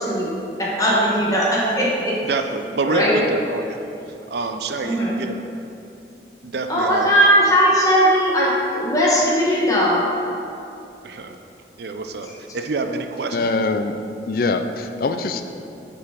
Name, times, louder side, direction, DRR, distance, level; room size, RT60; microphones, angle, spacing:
voice 1, 0.0-2.2 2.8-3.2 4.8-5.2 6.7-10.0, equal, 20° left, -5 dB, 1.1 m, -18 dB
voice 2, 2.2-3.8 4.3-5.4 6.4-7.2 11.0-11.4 11.8-12.3 12.5-13.5, right 3 dB, 65° right, 6 dB, 0.5 m, -26 dB
voice 3, 13.3-14.0 14.3-15.4, left 3 dB, 50° left, 8 dB, 0.4 m, -23 dB
6.7 x 4.7 x 5.0 m, 2.7 s
head